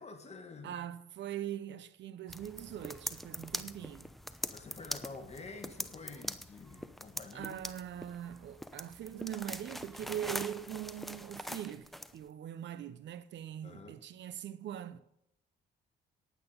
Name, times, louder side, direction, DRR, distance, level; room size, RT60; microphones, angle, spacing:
voice 1, 0.0-0.8 4.5-7.5 13.6-14.0, left 4 dB, 35° left, 2.0 m, -48 dB
voice 2, 0.6-4.1 7.3-15.0, right 11 dB, 65° right, 0.7 m, -42 dB
sound 1, 2.3-12.2, equal, ahead, 0.7 m, -43 dB
10.5 x 9.1 x 5.3 m
cardioid pair, 90°, 20 cm